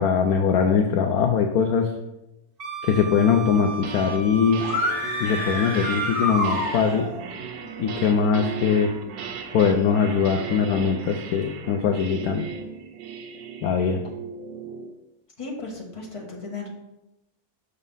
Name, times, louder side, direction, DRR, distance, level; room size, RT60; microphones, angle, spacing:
voice 1, 0.0-1.9 2.8-4.6 5.2-7.1 7.8-8.9 9.5-12.5 13.6-14.0, left 6 dB, 70° left, 4 dB, 1.0 m, -21 dB
Wind instrument woodwind instrument, 2.6-6.7, right 5 dB, 55° right, 0.6 m, -35 dB
sound 1, 3.5-4.2 4.5-14.9, right 6 dB, 80° right, 1.3 m, -37 dB
sound 2, 4.6-7.2, left 1 dB, 45° left, 1.6 m, -28 dB
voice 2, 15.4-16.7, left 3 dB, 20° left, -1 dB, 1.3 m, -35 dB
6.6 x 4.1 x 5.4 m, 0.91 s
omnidirectional pair, 1.9 m